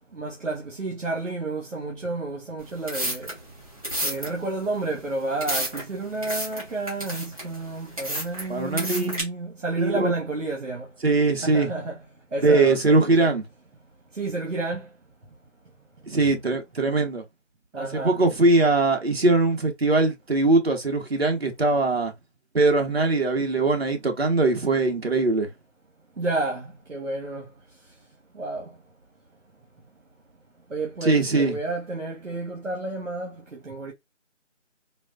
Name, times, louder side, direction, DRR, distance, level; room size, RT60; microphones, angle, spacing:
voice 1, 0.1-3.3 4.0-10.9 11.4-12.0 12.3-13.3 14.2-14.9 16.2-16.4 17.7-18.2 26.2-27.5 28.3-28.7 30.7-33.3 33.6-33.9, right 2 dB, 70° right, 1.3 m, -30 dB
sound 1, 2.6-9.2, equal, 30° right, 1.3 m, -32 dB
voice 2, 8.5-9.1 9.8-10.1 11.0-11.7 12.4-13.4 16.1-17.2 17.8-22.1 22.5-25.5 31.0-31.6, right 2 dB, 55° right, 1.0 m, -21 dB
4.0 x 2.4 x 2.4 m
figure-of-eight pair, 175°, 38 cm